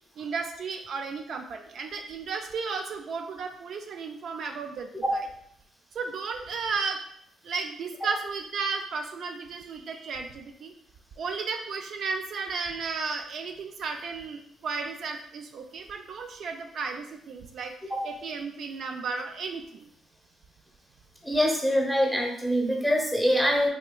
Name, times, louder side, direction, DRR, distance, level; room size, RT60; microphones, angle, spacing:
voice 1, 0.2-4.9 5.9-7.0 7.4-10.7 11.2-17.7 18.0-19.9, right 5 dB, 65° right, 4 dB, 0.3 m, -34 dB
voice 2, 21.2-23.7, equal, ahead, -1 dB, 0.8 m, -24 dB
3.2 x 2.8 x 2.2 m, 0.70 s
cardioid pair, 90°, 0 cm